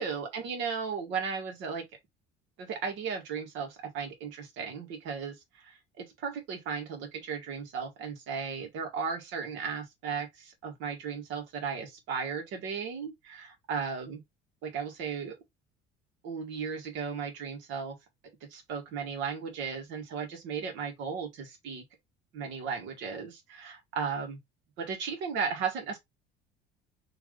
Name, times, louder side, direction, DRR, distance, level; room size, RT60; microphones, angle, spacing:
voice 1, 0.0-1.9 2.6-14.2 14.6-15.4 16.2-18.0 18.4-21.8 22.3-24.4 24.8-26.0, right 6 dB, 75° right, 1.8 m, -35 dB
3.5 x 3.1 x 3.7 m
cardioid pair, 110°, 20 cm